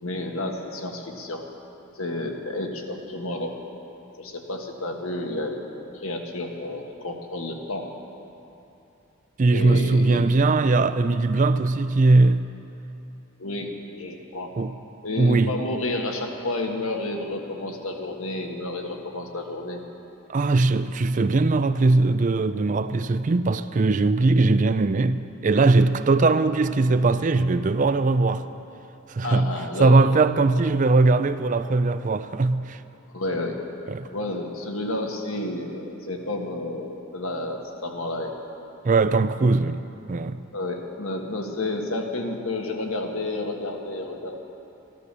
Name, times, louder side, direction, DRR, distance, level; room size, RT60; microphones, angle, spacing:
voice 1, 0.0-1.4 1.9-3.5 4.2-7.9 9.5-10.2 13.4-14.5 15.0-19.8 29.2-30.1 33.1-33.5 34.1-38.3 40.5-44.4, left 2 dB, 70° left, 1.6 m, -30 dB
voice 2, 9.4-12.5 14.6-14.7 15.2-15.5 20.3-28.4 29.1-29.5 29.8-32.8 33.9-34.1 38.8-39.8 40.1-40.4, right 3 dB, 35° right, 0.4 m, -20 dB
15.0 x 12.5 x 6.8 m
head